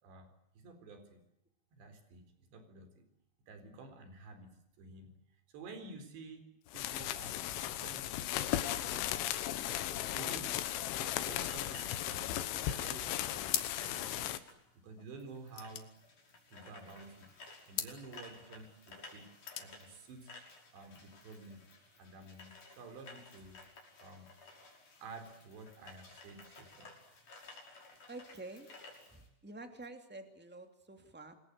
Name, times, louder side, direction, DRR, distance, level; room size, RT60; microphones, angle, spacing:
voice 1, 0.0-1.2 1.7-3.1 3.5-5.1 5.5-6.5 6.7-9.7 10.1-10.6 11.0-14.4 14.8-15.9 16.5-17.3 17.7-19.3 19.6-20.3 20.7-21.7 22.0-23.6 24.0-24.3 25.0-26.9, right 3 dB, 65° right, 9 dB, 6.3 m, -51 dB
sound 1, 6.7-14.4, left 12 dB, 90° left, 3.8 m, -36 dB
sound 2, 11.1-29.3, left 3 dB, 40° left, 7.3 m, -55 dB
sound 3, 13.4-14.1 14.4-14.5 14.7-16.9 17.7-18.0 19.2-19.8, left 10 dB, 60° left, 3.1 m, -40 dB
voice 2, 28.1-28.7 29.1-31.3, right 2 dB, 10° right, 6 dB, 0.6 m, -49 dB
28.5 x 21.5 x 8.2 m, 0.81 s
omnidirectional pair, 5.5 m